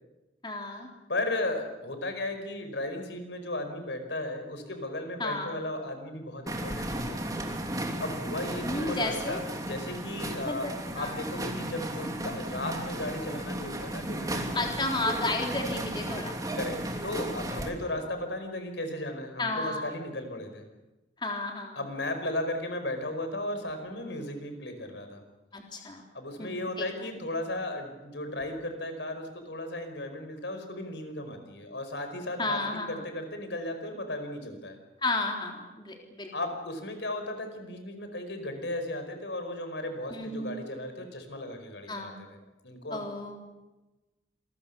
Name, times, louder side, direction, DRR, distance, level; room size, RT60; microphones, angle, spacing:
voice 1, 0.4-0.9 5.2-5.6 8.4-9.4 10.5-11.2 14.5-16.4 19.4-19.8 21.2-21.8 25.5-26.0 26.4-26.9 32.4-33.0 35.0-36.3 40.1-40.5 41.9-42.2 42.9-43.4, left 2 dB, 25° left, 1 dB, 3.7 m, -32 dB
voice 2, 1.1-7.2 8.0-10.7 10.9-14.7 16.5-16.8 17.0-20.6 21.7-25.2 26.1-34.8 36.3-42.3 42.6-43.1, left 1 dB, 90° left, 7 dB, 5.1 m, -35 dB
sound 1, 6.5-17.7, right 1 dB, 20° right, 3.0 m, -35 dB
28.0 x 22.0 x 7.0 m, 1.1 s
head